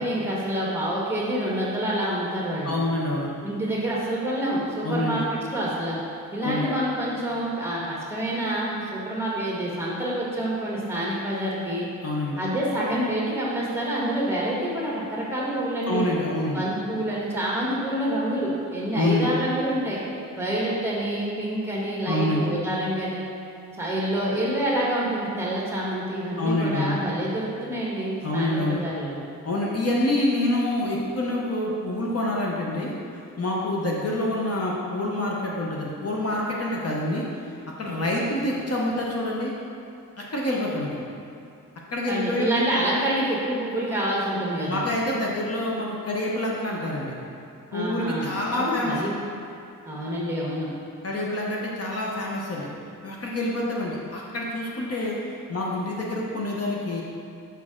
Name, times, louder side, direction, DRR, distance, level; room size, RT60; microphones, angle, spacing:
voice 1, 0.0-2.8 3.4-6.0 6.3-11.9 12.4-16.1 16.5-20.0 20.3-23.2 23.7-29.1 42.1-44.8 47.7-49.1 49.8-50.7, right 1 dB, 5° right, -6 dB, 1.4 m, -27 dB
voice 2, 2.6-3.3 4.8-5.2 6.4-6.7 12.0-12.4 15.9-16.6 18.9-19.3 22.1-22.5 26.4-27.0 28.2-28.8 29.4-32.9 33.4-39.5 40.2-41.0 41.9-42.6 44.7-47.1 47.7-49.0 51.0-52.7 53.0-57.0, left 1 dB, 45° left, -3 dB, 0.9 m, -27 dB
6.2 x 5.6 x 3.7 m, 2.6 s
wide cardioid pair, 135°, 33 cm